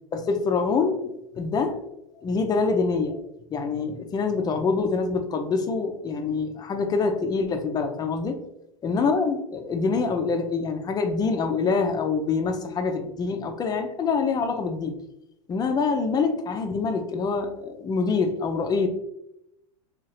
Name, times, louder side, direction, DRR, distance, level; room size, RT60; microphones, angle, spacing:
voice 1, 0.1-1.8 2.2-3.2 3.5-8.4 8.8-14.9 15.5-18.9, left 4 dB, 20° left, 6 dB, 0.4 m, -25 dB
2.7 x 2.4 x 3.0 m, 0.84 s
hypercardioid pair, 100°, 18 cm